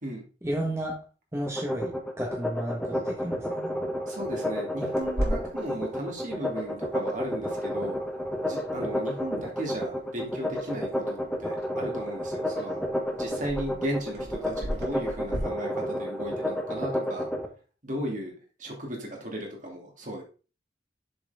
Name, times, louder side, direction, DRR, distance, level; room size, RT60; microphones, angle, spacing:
voice 1, 0.4-0.9 1.3-1.9 2.2-3.7, right 1 dB, 15° right, -2 dB, 1.3 m, -32 dB
sound 1, 1.5-17.5, equal, 5° left, 0.9 m, -31 dB
voice 2, 4.1-8.0 8.4-12.8 13.1-17.3 17.8-18.3 18.6-20.2, right 1 dB, 45° right, 0 dB, 2.4 m, -36 dB
Clock, 4.9-15.4, equal, 65° right, 3.3 m, -39 dB
7.0 x 6.4 x 3.6 m, 0.35 s
head